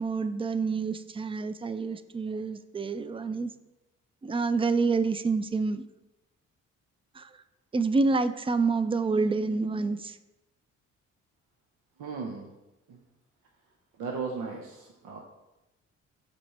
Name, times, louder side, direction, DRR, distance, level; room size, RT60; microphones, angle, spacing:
voice 1, 0.0-3.5 4.2-5.8 7.2-7.3 7.7-10.2, right 4 dB, 20° right, 13 dB, 0.4 m, -28 dB
voice 2, 12.0-12.5 12.9-13.0 14.0-15.2, right 4 dB, 90° right, 1 dB, 0.8 m, -36 dB
6.0 x 4.2 x 5.9 m, 0.99 s
cardioid pair, 90°, 30 cm